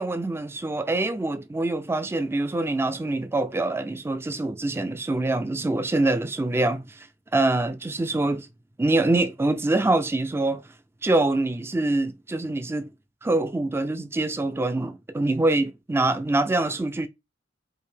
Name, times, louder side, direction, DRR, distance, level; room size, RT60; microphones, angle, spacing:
voice 1, 0.0-7.1 7.3-8.5 8.8-10.6 11.0-12.9 13.2-17.1, right 2 dB, 10° right, 0.3 m, -25 dB
4.7 x 2.7 x 3.3 m
head